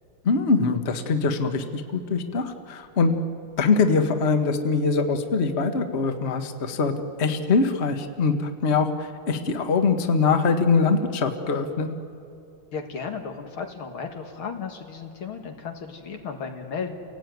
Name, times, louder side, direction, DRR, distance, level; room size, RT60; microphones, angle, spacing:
voice 1, 0.2-3.2 3.6-6.9 7.2-11.9, left 4 dB, 35° left, 6 dB, 1.3 m, -23 dB
voice 2, 12.7-17.0, left 5 dB, 80° left, 4 dB, 2.7 m, -34 dB
29.5 x 18.0 x 9.4 m, 2.6 s
omnidirectional pair, 2.3 m